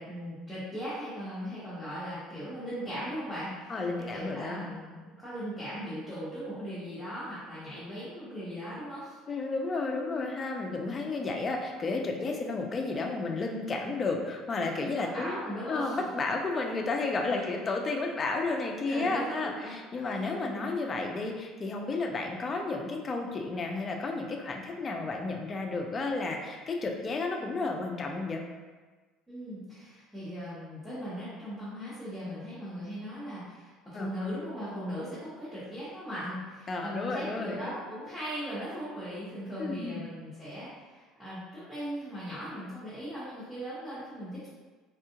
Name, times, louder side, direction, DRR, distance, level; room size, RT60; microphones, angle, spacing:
voice 1, 0.0-9.2 14.9-16.0 17.3-17.5 18.8-19.8 20.0-20.6 29.3-44.5, equal, ahead, -14 dB, 0.9 m, -39 dB
voice 2, 3.7-4.7 9.3-15.4 15.7-28.4 33.9-34.1 36.7-37.7 39.6-40.1, left 3 dB, 25° left, 2 dB, 0.4 m, -32 dB
3.5 x 2.3 x 2.8 m, 1.4 s
cardioid pair, 150°, 0 cm